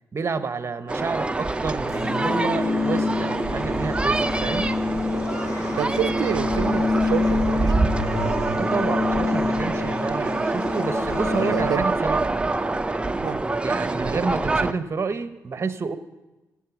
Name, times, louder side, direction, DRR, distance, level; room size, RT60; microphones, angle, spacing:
voice 1, 0.1-4.7 8.6-12.2 13.6-16.0, right 4 dB, 40° right, 0.8 m, -29 dB
sound 1, 0.9-14.7, right 2 dB, 15° right, 0.5 m, -26 dB
sound 2, 1.9-11.9, left 3 dB, 45° left, 2.2 m, -27 dB
voice 2, 5.8-7.9 11.3-11.9 13.2-13.4, right 10 dB, 70° right, 0.5 m, -28 dB
14.0 x 7.5 x 5.9 m
cardioid pair, 65°, 7 cm